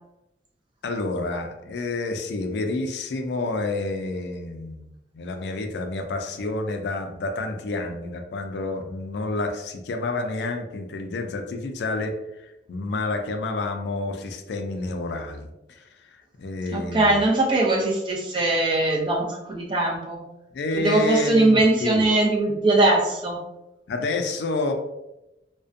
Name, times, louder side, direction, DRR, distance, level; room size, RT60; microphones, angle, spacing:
voice 1, 0.8-15.9 16.4-17.2 20.5-22.0 23.9-24.7, left 2 dB, 75° left, 5 dB, 0.3 m, -29 dB
voice 2, 16.7-20.2 20.7-23.4, right 2 dB, 25° right, -2 dB, 0.5 m, -21 dB
2.4 x 2.1 x 2.5 m, 0.93 s
head